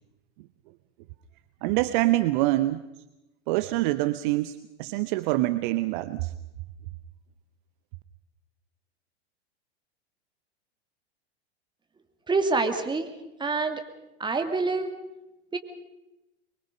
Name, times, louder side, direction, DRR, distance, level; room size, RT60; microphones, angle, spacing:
voice 1, 1.6-2.8 3.5-6.3, right 17 dB, 50° right, 13 dB, 0.9 m, -25 dB
voice 2, 12.3-13.1 13.4-13.8 14.2-14.9 15.5-15.6, right 3 dB, 15° right, 6 dB, 2.6 m, -26 dB
24.0 x 22.5 x 5.4 m, 0.96 s
hypercardioid pair, 100°, 33 cm